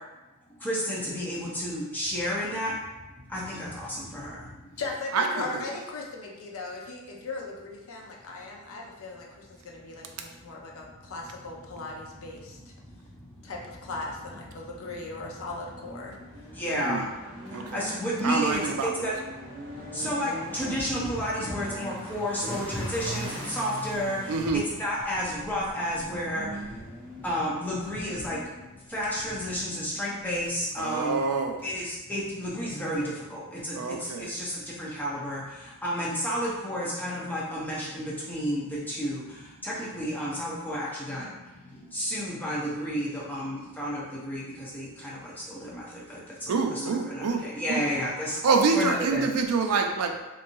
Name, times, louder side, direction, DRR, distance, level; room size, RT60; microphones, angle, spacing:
voice 1, 0.6-2.8 3.2-4.8 11.0-11.1 12.9-13.5 16.1-16.2 16.5-19.2 19.5-28.5 28.9-31.2 31.6-48.4 48.7-49.2, equal, 10° left, -6 dB, 0.6 m, -32 dB
voice 2, 4.8-12.7 13.4-16.2, left 3 dB, 65° left, -1 dB, 0.5 m, -38 dB
sound 1, 14.0-30.6, equal, 40° right, 0.6 m, -42 dB
voice 3, 16.7-17.1 17.5-17.9 18.2-19.1 24.3-24.6 30.8-31.6 33.7-34.3 46.5-47.4 47.7-47.8 48.4-50.1, right 4 dB, 80° right, 4 dB, 0.4 m, -26 dB
3.0 x 2.6 x 2.6 m, 1.1 s
head